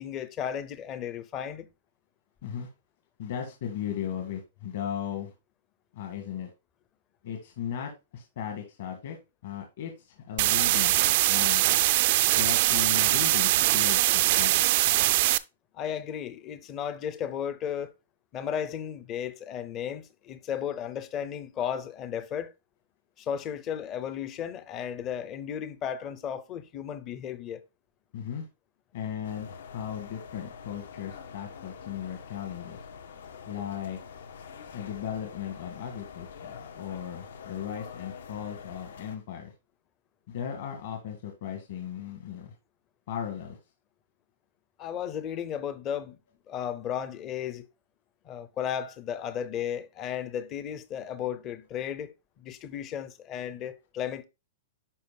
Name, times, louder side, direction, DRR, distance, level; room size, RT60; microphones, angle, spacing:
voice 1, 0.0-1.7 15.7-17.9 18.3-22.5 23.2-27.6 44.8-46.2 46.5-47.7 48.2-54.3, left 9 dB, 20° left, 0.6 m, -34 dB
voice 2, 3.2-5.3 5.9-6.5 7.2-9.2 9.4-11.0 11.3-11.7 12.3-14.6 28.1-28.5 28.9-32.8 33.5-34.0 34.7-39.5 40.3-42.5 43.1-43.6, left 9 dB, 45° left, 1.6 m, -36 dB
sound 1, 10.4-15.4, right 17 dB, 35° right, 0.4 m, -22 dB
sound 2, 29.2-39.2, left 6 dB, 75° left, 1.2 m, -45 dB
11.0 x 4.9 x 2.3 m
supercardioid pair, 180°, 0 cm